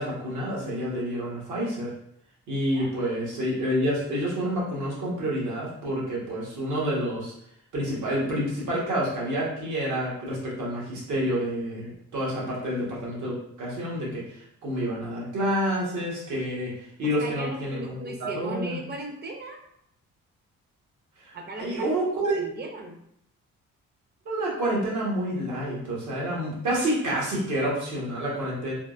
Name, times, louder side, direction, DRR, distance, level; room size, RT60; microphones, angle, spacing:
voice 1, 0.0-1.9 2.5-7.3 7.7-16.7 17.0-17.8 18.2-18.8 21.2-22.4 24.2-28.7, equal, 75° right, -5 dB, 1.3 m, -28 dB
voice 2, 17.0-19.6 21.3-21.9 22.4-23.0, right 2 dB, 35° right, 3 dB, 0.6 m, -37 dB
3.5 x 2.4 x 2.5 m, 0.73 s
cardioid pair, 90°, 30 cm